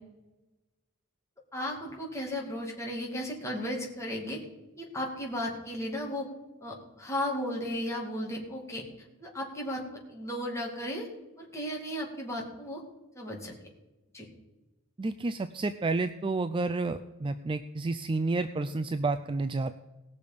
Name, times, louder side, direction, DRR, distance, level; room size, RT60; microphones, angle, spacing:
voice 1, 1.5-4.4 4.8-6.3 6.6-8.8 9.2-11.1 11.4-12.8 13.1-13.5 14.1-14.3, left 1 dB, 15° left, -1 dB, 2.4 m, -35 dB
voice 2, 15.0-19.7, right 3 dB, 25° right, 10 dB, 0.3 m, -30 dB
18.5 x 6.7 x 5.2 m, 1.1 s
head